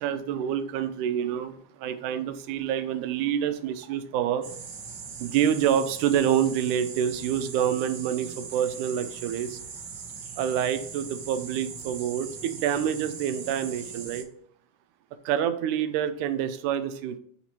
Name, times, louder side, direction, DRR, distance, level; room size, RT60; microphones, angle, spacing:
voice 1, 0.0-4.5 5.2-9.6 10.4-14.3 15.3-17.2, right 9 dB, 85° right, 10 dB, 2.1 m, -27 dB
sound 1, 4.4-14.2, right 5 dB, 70° right, 1.1 m, -40 dB
5.8 x 4.5 x 4.2 m, 0.64 s
omnidirectional pair, 3.5 m